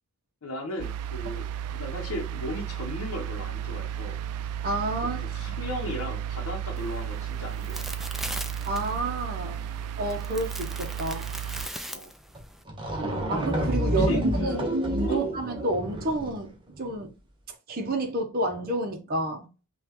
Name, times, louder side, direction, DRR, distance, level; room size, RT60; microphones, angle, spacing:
voice 1, 0.4-1.5 1.7-4.2 5.0-7.9 11.9-12.1 14.0-14.8 15.1-15.4, left 1 dB, 70° left, 0.8 m, -36 dB
sound 1, 0.8-11.7, right 9 dB, 90° right, 0.3 m, -34 dB
voice 2, 4.6-5.2 5.5-5.6 8.7-9.7 10.0-11.3 13.3-14.1 14.4-14.6 14.9-17.1 17.7-19.5, right 2 dB, 45° right, 0.7 m, -30 dB
sound 2, 6.8-12.6, right 1 dB, ahead, 0.3 m, -40 dB
sound 3, 12.3-12.4 12.7-16.4, equal, 20° right, 0.9 m, -28 dB
5.5 x 2.3 x 2.9 m
head